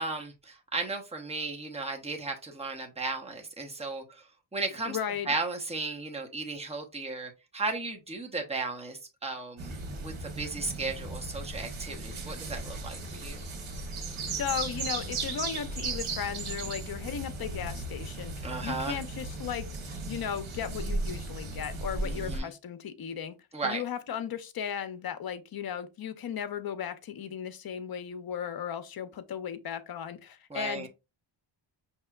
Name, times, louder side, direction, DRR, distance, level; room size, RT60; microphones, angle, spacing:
voice 1, 0.0-4.0 4.5-5.0 5.3-9.7 10.0-13.4 18.4-19.0 22.0-22.5 23.5-23.8 30.5-30.9, right 3 dB, 15° right, 1.0 m, -35 dB
voice 2, 4.9-5.3 14.3-23.3 23.6-30.9, left 8 dB, 50° left, 0.7 m, -36 dB
sound 1, 9.6-22.4, right 3 dB, 80° right, 1.3 m, -36 dB
5.5 x 2.9 x 2.3 m
cardioid pair, 95°, 48 cm